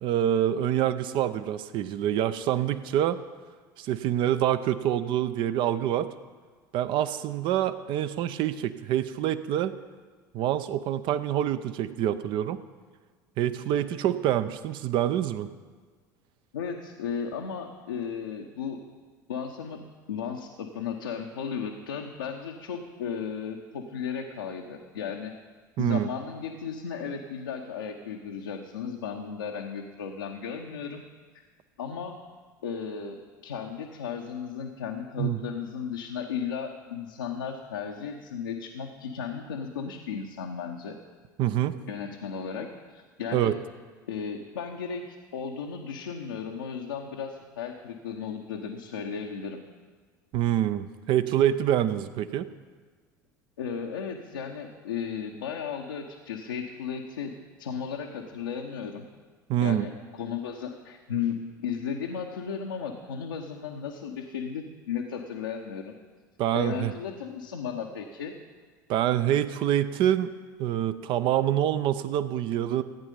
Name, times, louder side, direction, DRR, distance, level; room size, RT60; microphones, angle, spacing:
voice 1, 0.0-3.2 3.8-6.1 6.7-9.8 10.3-12.6 13.4-15.5 25.8-26.1 35.2-35.4 41.4-41.7 43.3-43.5 50.3-52.5 59.5-59.9 66.4-66.9 68.9-70.3 70.6-72.8, right 11 dB, 50° right, 12 dB, 0.7 m, -26 dB
voice 2, 16.5-18.8 19.3-25.4 25.8-31.0 31.3-31.4 31.8-32.2 32.6-41.0 41.9-43.5 44.1-49.6 53.6-59.1 59.6-65.9 66.5-68.3, left 7 dB, 75° left, 1 dB, 0.9 m, -35 dB
15.0 x 8.9 x 5.3 m, 1.5 s
figure-of-eight pair, 70°, 11 cm